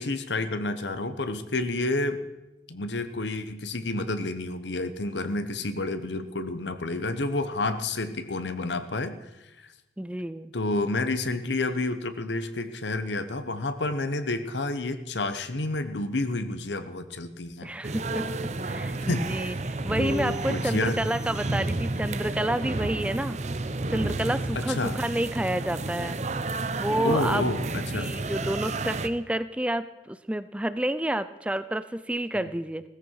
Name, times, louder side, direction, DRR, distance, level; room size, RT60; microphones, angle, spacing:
voice 1, 0.0-2.2 2.7-9.2 9.6-9.7 10.5-17.7 19.1-19.5 20.0-21.0 24.5-25.0 27.0-28.1 32.3-32.4, left 2 dB, 85° left, 10 dB, 1.1 m, -30 dB
voice 2, 10.0-10.5 17.6-18.3 18.6-23.4 23.9-26.2 26.8-27.4 27.7-32.8, right 1 dB, 5° right, 13 dB, 0.4 m, -29 dB
sound 1, 17.8-29.1, right 2 dB, 40° right, 0.7 m, -31 dB
17.0 x 14.5 x 4.7 m, 1.0 s
head